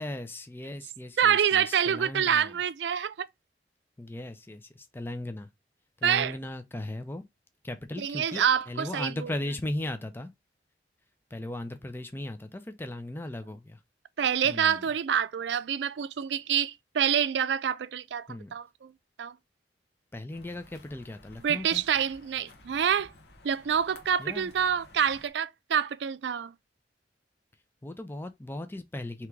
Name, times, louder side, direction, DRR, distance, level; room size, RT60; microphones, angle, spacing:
voice 1, 0.0-2.6 4.0-5.5 6.0-7.2 7.6-10.3 11.3-13.8 14.4-14.8 18.3-18.5 20.1-21.8 24.2-24.5 27.8-29.3, left 1 dB, 15° left, 0.4 m, -37 dB
voice 2, 1.2-3.3 6.0-6.4 8.0-9.3 14.2-18.9 19.2-19.3 21.4-23.1 23.4-26.5, right 8 dB, 80° right, 0.4 m, -27 dB
sound 1, 20.3-25.3, left 2 dB, 75° left, 1.1 m, -54 dB
3.6 x 2.9 x 4.5 m
head